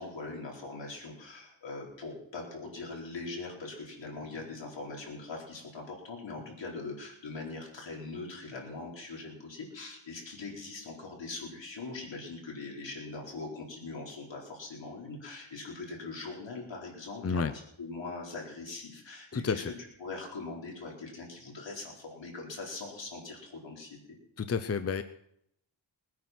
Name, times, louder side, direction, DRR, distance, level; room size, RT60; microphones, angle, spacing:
voice 1, 0.0-17.5 17.8-19.6 20.0-24.0, left 3 dB, 70° left, -2 dB, 4.5 m, -41 dB
voice 2, 19.3-19.7 24.4-25.0, left 5 dB, 35° left, 11 dB, 0.6 m, -30 dB
20.5 x 9.5 x 6.0 m, 0.73 s
wide cardioid pair, 115°, 46 cm